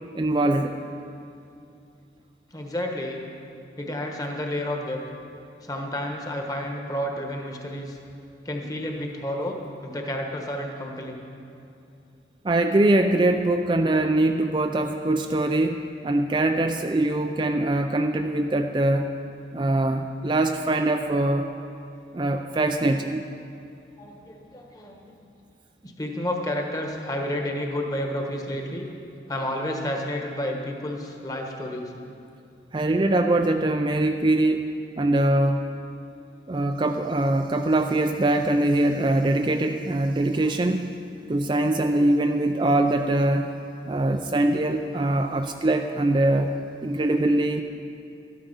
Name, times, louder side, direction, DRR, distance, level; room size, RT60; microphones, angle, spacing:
voice 1, 0.1-0.8 12.4-19.1 19.5-21.5 22.1-23.3 32.7-35.6 36.5-40.9 41.3-43.5 43.9-46.5 46.8-47.6, right 1 dB, 25° right, 5 dB, 0.4 m, -23 dB
voice 2, 2.5-3.2 3.8-5.0 5.6-8.0 8.4-9.6 9.8-11.2 24.0-25.1 25.8-28.8 29.3-31.9, left 1 dB, 20° left, 2 dB, 1.2 m, -30 dB
13.0 x 11.5 x 5.5 m, 2.6 s
head